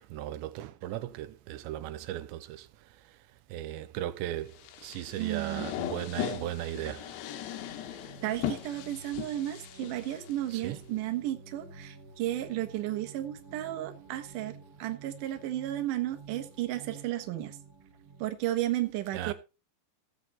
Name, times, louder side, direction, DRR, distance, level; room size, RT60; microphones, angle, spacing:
voice 1, 0.0-2.7 3.5-4.5 4.8-7.1 10.5-10.8 19.1-19.3, right 13 dB, 90° right, 3.0 m, -36 dB
sound 1, 4.6-10.7, left 11 dB, 75° left, 3.1 m, -38 dB
voice 2, 5.2-5.7 8.2-17.6 18.2-19.3, right 14 dB, 60° right, 2.4 m, -33 dB
sound 2, 5.7-18.3, right 4 dB, 45° right, 1.8 m, -51 dB
16.0 x 7.9 x 4.2 m
omnidirectional pair, 5.0 m